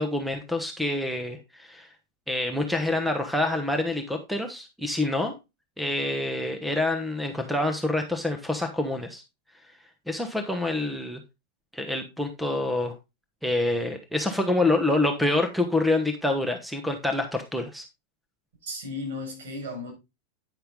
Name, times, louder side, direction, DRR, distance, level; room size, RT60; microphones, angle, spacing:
voice 1, 0.0-1.9 2.3-5.3 5.8-9.2 10.1-11.2 11.7-12.9 13.4-17.8, left 2 dB, ahead, 1.0 m, -27 dB
voice 2, 18.6-19.9, left 2 dB, 60° right, 5.5 m, -34 dB
9.6 x 5.7 x 3.7 m
figure-of-eight pair, 90°, 0 cm